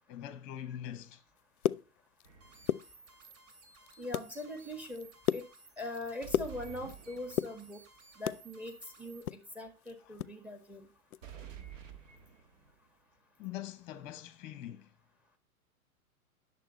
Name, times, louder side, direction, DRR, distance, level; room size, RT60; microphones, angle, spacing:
voice 1, 0.1-1.2 10.1-10.2 13.4-14.9, left 11 dB, 30° left, 1.0 m, -43 dB
sound 1, 1.4-2.3 2.6-3.4 3.8-4.3 4.7-7.0 7.3-8.5 8.8-10.4 10.6-10.7 11.1-11.3 11.7-11.9, left 11 dB, 75° left, 0.5 m, -35 dB
sound 2, 2.2-2.9 6.2-7.8 11.2-12.8, right 8 dB, 55° right, 1.8 m, -50 dB
sound 3, 2.4-9.2, right 3 dB, 35° right, 2.6 m, -58 dB
voice 2, 4.0-5.1 5.3-5.5 5.8-7.8 8.2-10.9, left 1 dB, 5° right, 1.7 m, -42 dB
10.5 x 6.9 x 4.2 m
figure-of-eight pair, 110°, 44 cm